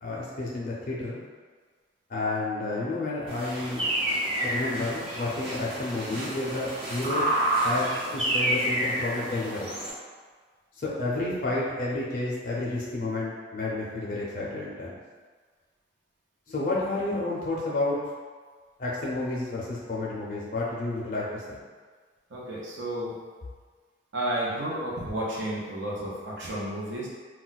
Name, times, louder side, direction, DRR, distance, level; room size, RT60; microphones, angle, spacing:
voice 1, 0.0-1.2 2.1-3.9 4.4-9.7 10.8-15.0 16.5-18.0 18.8-21.6, left 2 dB, 45° left, -5 dB, 0.4 m, -31 dB
sound 1, 3.3-9.9, right 1 dB, 30° right, 0.8 m, -29 dB
voice 2, 22.3-23.2 24.1-27.1, right 1 dB, 75° right, -5 dB, 0.7 m, -32 dB
2.3 x 2.1 x 3.9 m, 1.5 s
head